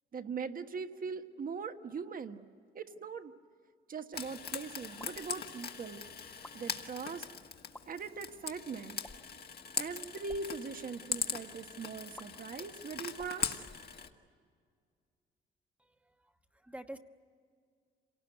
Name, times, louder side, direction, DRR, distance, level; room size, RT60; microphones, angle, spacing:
voice 1, 0.1-2.5 2.7-3.3 3.9-6.0 6.5-7.3 7.9-9.0 9.8-13.6, right 5 dB, 45° right, 8 dB, 1.4 m, -41 dB
Frying (food), 4.1-14.1, left 6 dB, 50° left, 1.7 m, -41 dB
sound 1, 5.0-5.3 6.3-6.6 7.6-7.9 9.0-9.4 10.2-10.5 12.2-12.3 13.1-14.3, left 1 dB, 10° left, 1.4 m, -53 dB
voice 2, 15.8-17.0, right 1 dB, 5° right, 6 dB, 1.2 m, -49 dB
27.0 x 18.5 x 9.5 m, 2.2 s
cardioid pair, 90°, 20 cm